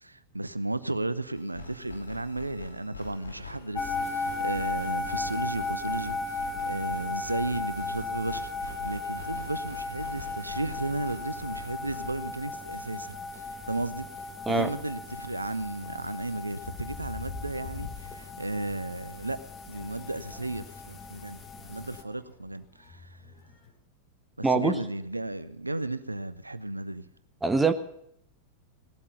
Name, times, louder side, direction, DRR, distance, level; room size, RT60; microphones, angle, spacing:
voice 1, 0.0-13.1 13.7-14.1 14.5-19.4 19.7-21.4 21.7-23.1 24.4-27.1, right 2 dB, 85° right, 0.7 m, -34 dB
sound 1, 1.3-12.1, left 4 dB, 80° left, 2.3 m, -44 dB
sound 2, 3.7-22.0, left 3 dB, 25° left, 1.2 m, -36 dB
sound 3, 16.6-23.7, left 5 dB, 40° left, 3.8 m, -45 dB
voice 2, 24.4-24.7 27.4-27.7, right 4 dB, 10° right, 0.9 m, -23 dB
18.0 x 12.5 x 5.5 m
figure-of-eight pair, 90°, 0 cm